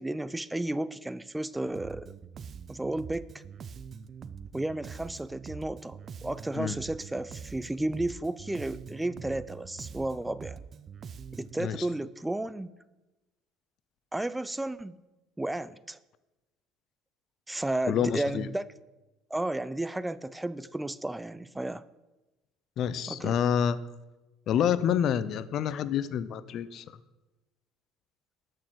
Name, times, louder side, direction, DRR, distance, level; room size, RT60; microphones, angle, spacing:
voice 1, 0.0-2.1 2.7-3.4 4.5-10.6 11.3-12.7 14.1-15.0 15.4-16.0 17.5-18.7 19.3-21.8 23.1-23.3, right 1 dB, 10° right, 17 dB, 0.5 m, -33 dB
Bass guitar, 1.7-11.6, right 6 dB, 40° right, 0.7 m, -44 dB
voice 2, 17.9-18.5 22.8-23.8 24.5-26.8, left 9 dB, 55° left, 16 dB, 0.7 m, -27 dB
12.5 x 6.6 x 7.8 m, 1.1 s
supercardioid pair, 80°, 0 cm